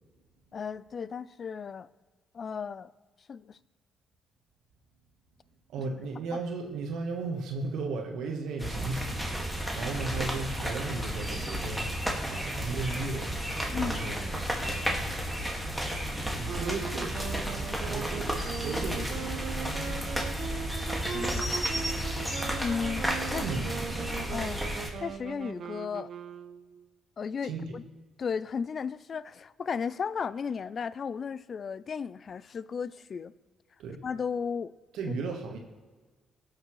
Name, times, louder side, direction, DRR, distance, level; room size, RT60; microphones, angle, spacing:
voice 1, 0.5-1.9 2.3-2.9 3.3-3.6 6.3-6.4 13.7-14.0 21.1-21.5 22.6-23.5 24.3-24.6 25.0-26.1 27.2-27.8 28.2-33.3 34.0-34.7, left 6 dB, 50° left, 18 dB, 0.3 m, -34 dB
voice 2, 5.7-13.4 13.8-15.6 16.3-19.3 23.3-24.0 27.4-27.8 33.8-34.0 34.9-35.6, right 4 dB, 85° right, 3 dB, 1.2 m, -36 dB
sound 1, 8.6-24.9, equal, ahead, 1.8 m, -32 dB
sound 2, 16.4-26.9, right 7 dB, 60° right, 0.5 m, -40 dB
17.5 x 6.6 x 3.1 m, 1.3 s
cardioid pair, 90°, 0 cm